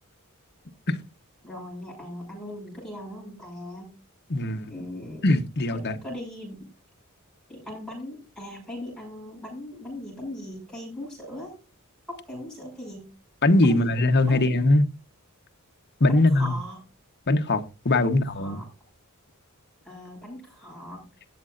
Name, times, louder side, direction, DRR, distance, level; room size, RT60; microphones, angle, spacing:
voice 1, 1.4-3.9 4.7-5.2 5.7-6.7 7.5-11.5 12.1-13.1 13.6-13.9 14.2-14.5 16.1-16.8 18.0-18.6 19.8-21.0, left 1 dB, 5° left, 7.1 m, -39 dB
voice 2, 4.3-4.7 5.2-6.0 13.4-14.8 16.0-16.6 17.3-18.6, left 2 dB, 50° left, 1.1 m, -21 dB
18.5 x 7.6 x 2.6 m
head